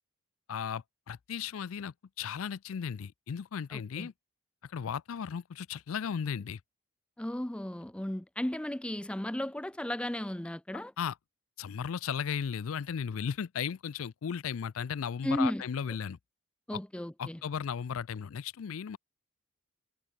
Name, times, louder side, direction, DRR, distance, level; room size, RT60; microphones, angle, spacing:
voice 1, 0.5-4.1 4.6-6.6 11.0-11.2 11.6-16.2 17.2-19.0, left 7 dB, 70° left, 0.4 m, -35 dB
voice 2, 3.7-4.1 7.2-10.9 15.2-15.6 16.7-17.4, left 1 dB, 5° left, 0.4 m, -34 dB
head